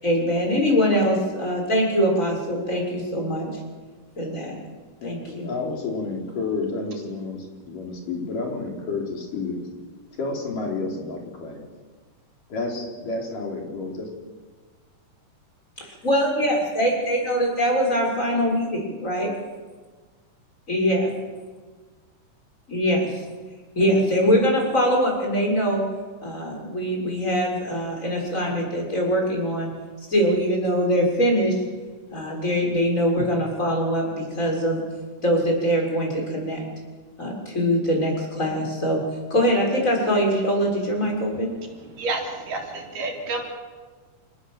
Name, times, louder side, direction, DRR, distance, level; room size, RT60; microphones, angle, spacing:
voice 1, 0.0-3.6 4.2-4.6 5.0-5.5 15.8-19.3 20.7-21.1 22.7-23.2 23.8-25.8 26.2-29.7 30.1-31.6 32.1-34.8 35.2-36.7 37.2-39.0 39.3-41.5, equal, 20° left, 0 dB, 7.0 m, -23 dB
voice 2, 5.0-9.6 10.2-11.7 12.5-14.1 23.8-24.0, left 3 dB, 75° left, 0 dB, 5.8 m, -30 dB
voice 3, 42.0-43.4, right 2 dB, 75° right, 2 dB, 5.0 m, -29 dB
28.5 x 19.0 x 7.6 m, 1.4 s
omnidirectional pair, 3.8 m